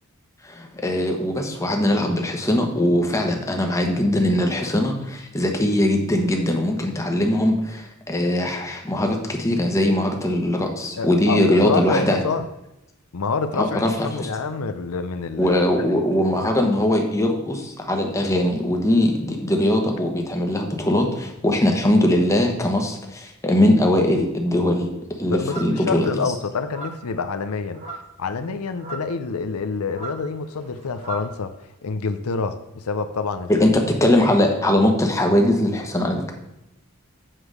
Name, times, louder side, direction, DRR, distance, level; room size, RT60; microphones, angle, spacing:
voice 1, 0.4-12.2 13.6-14.3 15.4-24.9 25.2-26.1 33.5-33.7 34.0-36.3, left 1 dB, 15° left, 2 dB, 1.1 m, -21 dB
voice 2, 11.0-12.4 13.1-15.6 16.4-16.5 21.1-21.2 25.3-31.5 31.8-33.5, left 4 dB, 90° left, 9 dB, 0.6 m, -27 dB
sound 1, 25.5-25.9 26.6-27.1 27.7-28.2 28.7-29.1 29.9-31.3, right 3 dB, 30° right, 1.3 m, -37 dB
7.5 x 4.8 x 6.4 m, 0.88 s
head